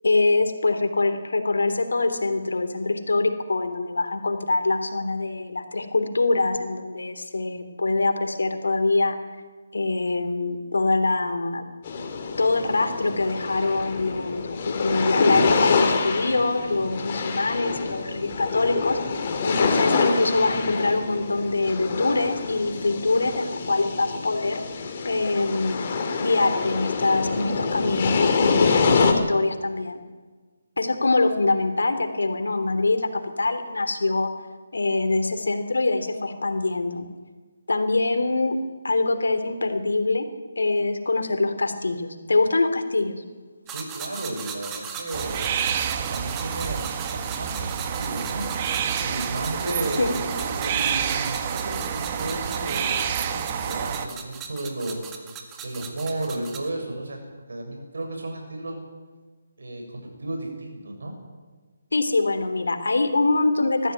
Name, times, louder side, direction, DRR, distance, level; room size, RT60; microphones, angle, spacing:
voice 1, 0.0-9.2 9.7-11.6 12.4-19.0 19.4-24.6 25.0-25.9 26.2-30.0 30.8-34.3 34.7-37.1 37.7-38.6 38.8-40.3 40.5-43.2 50.0-50.1 61.9-63.9, left 3 dB, 85° left, 7 dB, 3.2 m, -24 dB
sound 1, 11.8-29.1, left 4 dB, 40° left, 3.1 m, -26 dB
sound 2, 43.7-56.7, right 6 dB, 15° right, 1.9 m, -39 dB
voice 2, 43.7-45.5 45.9-55.0 55.6-57.2 57.5-58.8 59.6-61.1, right 1 dB, 75° right, 2 dB, 7.3 m, -33 dB
sound 3, 45.1-54.1, right 8 dB, 30° right, 1.4 m, -28 dB
20.0 x 14.5 x 9.6 m, 1.4 s
hypercardioid pair, 160°, 0 cm